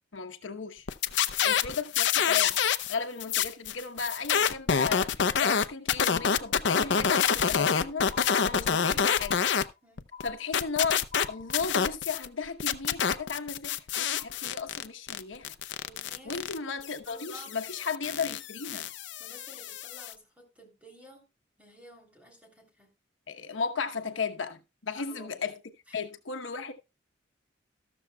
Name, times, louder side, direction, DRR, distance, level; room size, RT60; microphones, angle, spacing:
voice 1, 0.1-0.9 1.4-2.6 2.9-8.1 8.4-9.4 10.2-11.0 11.3-15.5 16.2-18.9 23.3-25.6 25.9-26.7, left 5 dB, 80° left, 1.0 m, -35 dB
sound 1, 0.9-2.9 3.2-9.6 10.0-12.3 12.6-20.1, left 7 dB, 65° left, 0.6 m, -27 dB
sound 2, 6.1-6.8 7.1-7.8 8.1-8.8 9.1-9.8 10.1-10.8 11.1-11.8, left 7 dB, 40° right, 4.8 m, -48 dB
voice 2, 15.8-16.7 17.0-17.6 19.2-21.3 21.6-22.9 23.3-23.4 23.8-23.9 24.9-25.4 25.9-26.1 26.5-26.6, equal, 5° right, 3.3 m, -52 dB
13.5 x 13.0 x 2.3 m
head